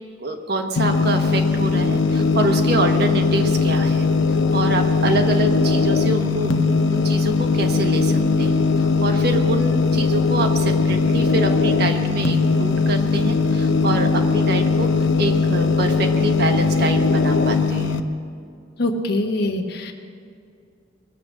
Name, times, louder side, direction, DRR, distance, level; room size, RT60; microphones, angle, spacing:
voice 1, 0.2-4.1 4.5-14.9 15.2-18.0, right 2 dB, 55° right, 5 dB, 1.2 m, -26 dB
sound 1, 0.8-18.0, left 4 dB, 85° left, 0.8 m, -19 dB
voice 2, 18.8-19.9, left 1 dB, 55° left, 4 dB, 1.2 m, -23 dB
21.5 x 8.1 x 6.3 m, 2.3 s
head